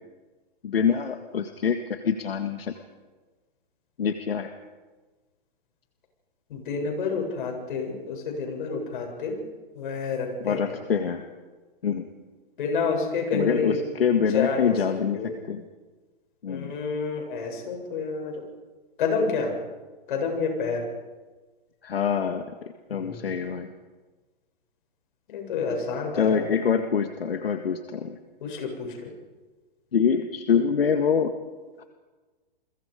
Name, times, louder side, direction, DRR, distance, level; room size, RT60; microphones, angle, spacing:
voice 1, 0.6-2.7 4.0-4.5 10.4-11.2 11.8-12.1 13.3-15.6 16.4-16.7 21.8-23.7 26.1-28.2 29.9-31.3 31.8-31.9, left 6 dB, 85° left, 6 dB, 1.9 m, -25 dB
voice 2, 6.5-9.4 9.8-10.8 12.6-13.9 14.3-14.7 15.2-15.3 16.5-18.4 19.0-19.5 20.1-20.8 22.9-23.4 25.3-26.4 28.4-29.1, left 4 dB, 60° left, 2 dB, 7.9 m, -29 dB
29.5 x 23.0 x 5.2 m, 1.3 s
hypercardioid pair, 135°, 29 cm